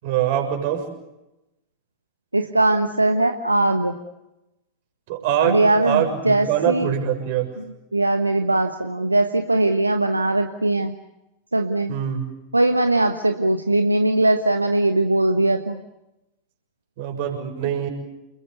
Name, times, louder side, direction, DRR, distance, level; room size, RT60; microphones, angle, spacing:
voice 1, 0.0-0.8 5.1-7.5 11.9-12.3 17.0-17.9, right 9 dB, 50° right, 4 dB, 6.8 m, -23 dB
voice 2, 2.3-3.9 5.4-6.9 7.9-10.9 11.5-11.9 12.5-15.8, right 2 dB, 85° right, 7 dB, 1.2 m, -20 dB
30.0 x 22.0 x 8.1 m, 0.92 s
figure-of-eight pair, 90°, 0 cm